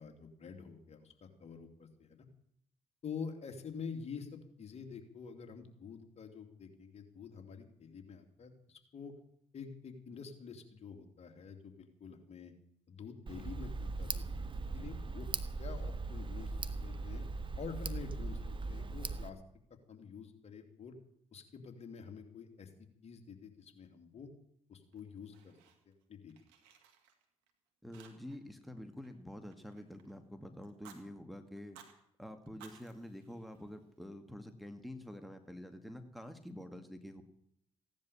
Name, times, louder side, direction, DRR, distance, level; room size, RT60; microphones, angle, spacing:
voice 1, 0.0-2.2 3.0-9.1 9.5-12.5 12.9-14.2 14.7-15.3 15.6-16.5 16.8-17.2 17.6-19.4 19.9-20.9 21.3-24.3 24.7-25.5 25.9-26.4, left 6 dB, 50° left, 5 dB, 3.0 m, -47 dB
Tick, 13.3-19.3, right 3 dB, 35° right, 1.5 m, -39 dB
Fire, 24.9-26.0 26.3-27.5 27.9-28.5 28.8-30.2 30.6-31.0 31.6-32.0 32.5-34.0, right 8 dB, 80° right, 2.3 m, -60 dB
voice 2, 27.8-31.8 32.2-37.2, left 1 dB, ahead, 7 dB, 2.2 m, -48 dB
16.5 x 10.5 x 7.2 m, 0.70 s
hypercardioid pair, 50°, 14 cm